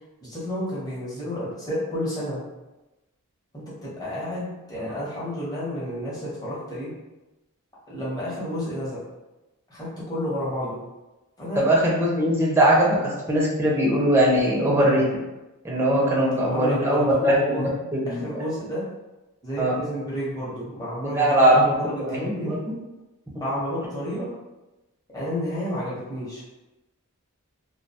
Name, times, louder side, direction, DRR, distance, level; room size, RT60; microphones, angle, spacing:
voice 1, 0.2-2.4 3.5-6.9 7.9-9.0 9.7-10.8 11.4-11.6 15.9-17.7 18.1-18.9 19.4-22.6 23.4-24.3 25.1-26.4, equal, 15° left, -8 dB, 0.8 m, -31 dB
voice 2, 11.6-15.0 15.6-18.4 19.6-19.8 21.0-22.6, right 1 dB, 10° right, -4 dB, 0.4 m, -21 dB
2.3 x 2.2 x 2.7 m, 1.0 s
head